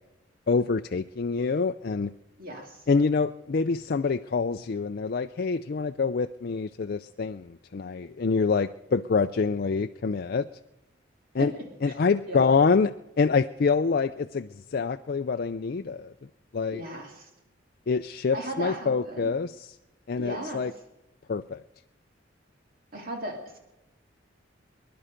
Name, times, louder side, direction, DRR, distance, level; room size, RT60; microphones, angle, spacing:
voice 1, 0.5-2.1 2.9-10.5 11.3-11.5 11.8-16.1 16.5-16.8 17.9-19.7 20.1-20.7 21.3-21.6, left 4 dB, 50° left, 8 dB, 0.4 m, -26 dB
voice 2, 2.4-2.8 11.4-11.5 11.9-12.0 12.3-12.4 16.7-17.3 18.3-19.3 20.2-20.6 22.9-23.6, right 1 dB, 50° right, 2 dB, 2.4 m, -36 dB
24.5 x 11.0 x 5.1 m, 0.97 s
head